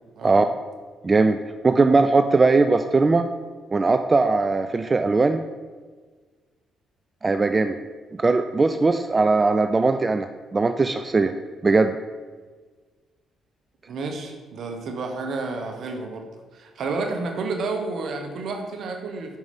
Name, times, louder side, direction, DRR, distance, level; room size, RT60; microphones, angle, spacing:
voice 1, 1.0-1.4 1.6-3.3 3.7-5.4 7.2-7.8 8.1-11.3 11.6-11.9, right 3 dB, 30° right, 8 dB, 0.3 m, -19 dB
voice 2, 13.9-19.4, right 3 dB, 65° right, 4 dB, 1.0 m, -30 dB
5.5 x 4.6 x 5.2 m, 1.5 s
hypercardioid pair, 55°, 0 cm